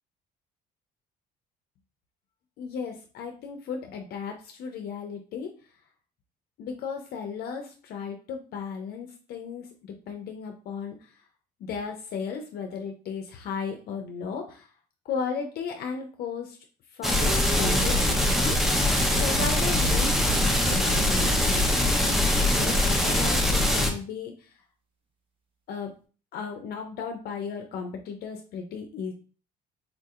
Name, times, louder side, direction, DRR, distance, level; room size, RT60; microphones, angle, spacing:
voice 1, 2.6-5.5 6.6-11.0 11.6-14.7 15.0-16.6 16.9-17.3 17.6-18.9 19.2-24.5 25.7-25.9 26.3-29.1, left 6 dB, 65° left, 3 dB, 0.6 m, -35 dB
sound 1, 17.0-23.9, left 1 dB, ahead, 0.6 m, -23 dB
sound 2, 17.2-19.9 20.5-23.0, equal, 30° right, 0.9 m, -43 dB
3.8 x 2.6 x 2.4 m, 0.37 s
cardioid pair, 110°, 17 cm